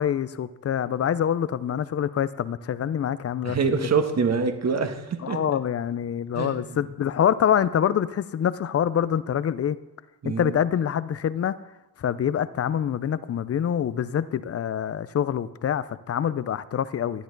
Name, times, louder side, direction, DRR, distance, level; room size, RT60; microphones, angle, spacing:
voice 1, 0.0-3.6 5.2-9.8 10.2-11.6 12.0-17.2, left 9 dB, 35° left, 16 dB, 0.6 m, -25 dB
voice 2, 3.4-5.4 6.3-6.8 10.2-10.6, right 5 dB, 40° right, 7 dB, 1.5 m, -25 dB
11.5 x 9.5 x 4.0 m, 1.0 s
supercardioid pair, 65°, 42 cm